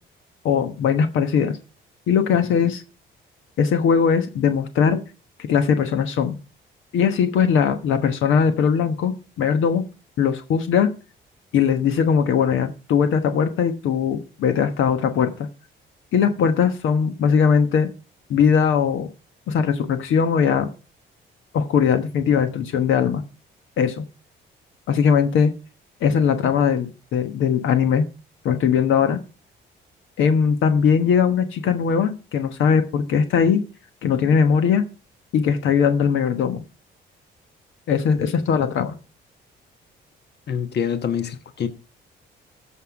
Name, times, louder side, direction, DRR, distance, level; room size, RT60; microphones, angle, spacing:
voice 1, 0.4-1.6 2.1-2.8 3.6-5.0 5.4-6.4 6.9-9.8 10.2-10.9 11.5-15.5 16.1-17.9 18.3-19.1 19.5-20.7 21.5-23.2 23.8-24.0 24.9-25.5 26.0-28.0 28.4-29.2 30.2-33.6 34.0-34.8 35.3-36.6 37.9-38.9, left 7 dB, 80° left, 1.2 m, -20 dB
voice 2, 40.5-41.7, left 7 dB, 60° left, 1.2 m, -25 dB
14.0 x 5.8 x 4.8 m
cardioid pair, 90°, 20 cm